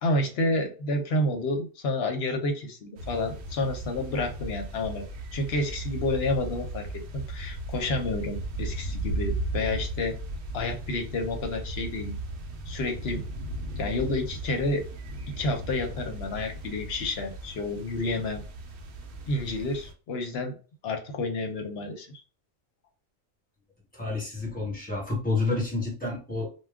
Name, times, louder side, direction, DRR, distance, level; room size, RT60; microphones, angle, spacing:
voice 1, 0.0-5.0 5.3-6.9 7.1-10.1 10.5-12.2 12.7-13.2 13.8-14.8 15.4-18.4 19.3-20.5 20.8-22.2, left 2 dB, 60° left, 4 dB, 0.8 m, -29 dB
sound 1, 3.0-19.9, right 1 dB, 65° right, 0.7 m, -36 dB
voice 2, 23.9-26.5, left 3 dB, 5° left, -3 dB, 1.1 m, -29 dB
2.2 x 2.2 x 3.5 m, 0.36 s
omnidirectional pair, 1.4 m